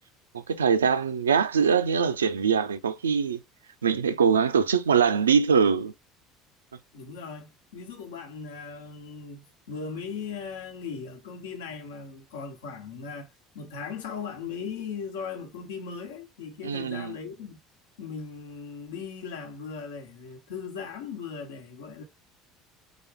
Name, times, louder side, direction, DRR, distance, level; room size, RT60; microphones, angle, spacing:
voice 1, 0.3-3.4 3.8-5.9 16.6-17.1, right 6 dB, 80° right, 0.4 m, -23 dB
voice 2, 6.9-13.3 13.5-17.6 18.0-22.0, left 5 dB, 70° left, 1.0 m, -38 dB
4.1 x 3.7 x 3.4 m
figure-of-eight pair, 65°, 0 cm